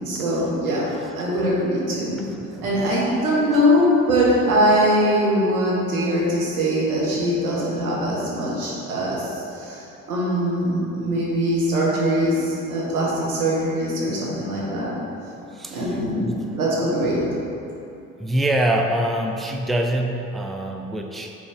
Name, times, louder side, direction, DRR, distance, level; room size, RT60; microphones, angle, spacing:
voice 1, 0.0-0.9 1.1-2.2 2.6-14.9 15.7-16.3 16.5-17.2, equal, 90° right, -6 dB, 1.4 m, -22 dB
voice 2, 1.0-1.5 2.3-3.0 15.5-16.5 18.2-21.4, right 1 dB, ahead, 2 dB, 0.5 m, -26 dB
6.0 x 4.1 x 5.0 m, 2.8 s
hypercardioid pair, 55°, 42 cm